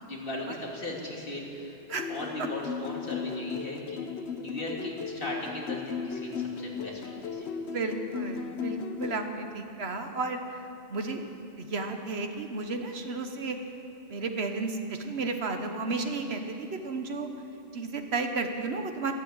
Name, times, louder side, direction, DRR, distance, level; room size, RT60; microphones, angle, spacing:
voice 1, 0.0-1.8 2.1-4.0 4.4-7.5, left 1 dB, 60° left, -2 dB, 2.6 m, -37 dB
sound 1, 1.9-9.3, left 6 dB, 85° left, 1.1 m, -36 dB
voice 2, 7.7-11.2 11.6-13.6 14.1-17.3 17.7-19.1, right 3 dB, 75° right, 5 dB, 1.4 m, -33 dB
13.5 x 12.0 x 8.9 m, 2.7 s
omnidirectional pair, 1.1 m